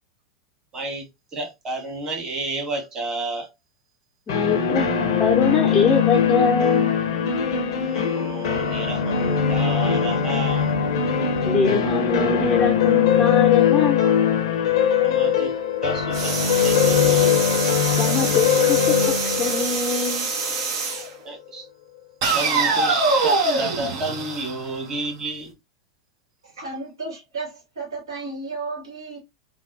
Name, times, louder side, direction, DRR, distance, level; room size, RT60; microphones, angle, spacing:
voice 1, 0.7-3.5 7.8-10.7 15.0-15.5 15.8-17.3 21.2-21.7 22.2-25.6, right 2 dB, 30° right, 1.7 m, -31 dB
sound 1, 4.3-21.0, left 7 dB, 70° left, 0.7 m, -21 dB
voice 2, 4.3-4.9 5.2-6.9 11.4-14.1 18.0-19.1 19.4-20.3, left 5 dB, 25° left, 0.6 m, -23 dB
sound 2, 16.1-21.1 22.2-25.1, right 4 dB, 55° right, 0.9 m, -25 dB
voice 3, 26.4-29.2, right 3 dB, 75° right, 1.6 m, -33 dB
3.4 x 2.2 x 2.6 m
hypercardioid pair, 95°, 2 cm